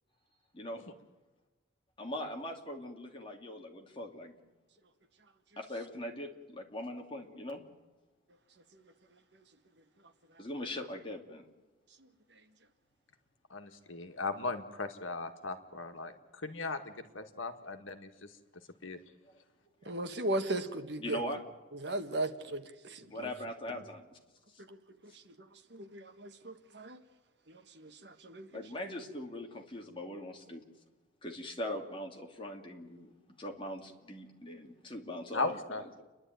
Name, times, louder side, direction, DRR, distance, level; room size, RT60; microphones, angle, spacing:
voice 1, 2.0-4.3 5.6-7.6 10.4-11.5 19.8-20.0 21.0-21.4 23.1-24.2 24.5-24.6 28.5-30.6 31.2-33.1 33.4-36.0, left 1 dB, 25° left, 1 dB, 2.5 m, -41 dB
voice 2, 13.5-18.3 18.8-19.0 35.3-35.8, left 3 dB, 85° left, 7 dB, 1.8 m, -38 dB
voice 3, 19.8-21.4 21.8-23.3 24.7-24.8 25.3-25.4 25.7-27.0 27.5-28.5, right 1 dB, 60° right, 8 dB, 1.5 m, -37 dB
29.5 x 11.0 x 9.3 m, 1.3 s
head